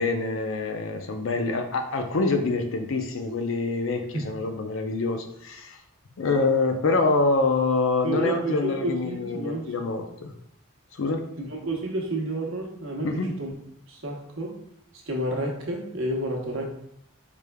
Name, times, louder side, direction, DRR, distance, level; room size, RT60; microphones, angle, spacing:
voice 1, 0.0-5.8 6.2-10.3 11.0-11.3 13.0-13.3, left 3 dB, 70° left, 6 dB, 0.5 m, -25 dB
voice 2, 8.0-9.7 11.4-13.5 13.9-14.6 15.1-16.7, right 1 dB, 75° right, 0 dB, 0.9 m, -30 dB
4.9 x 3.3 x 2.2 m, 0.73 s
head